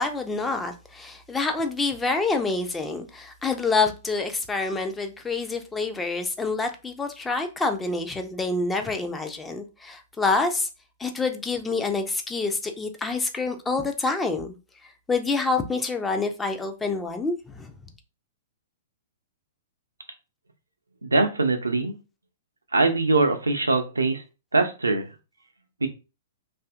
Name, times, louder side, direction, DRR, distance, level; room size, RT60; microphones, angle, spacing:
voice 1, 0.0-10.7 11.0-14.5 15.1-17.7, left 3 dB, 10° left, 0.4 m, -27 dB
voice 2, 21.0-21.9 22.7-24.2 24.5-25.0 25.8-25.9, right 3 dB, 85° right, 0.5 m, -22 dB
2.6 x 2.5 x 2.3 m
figure-of-eight pair, 110°, 0 cm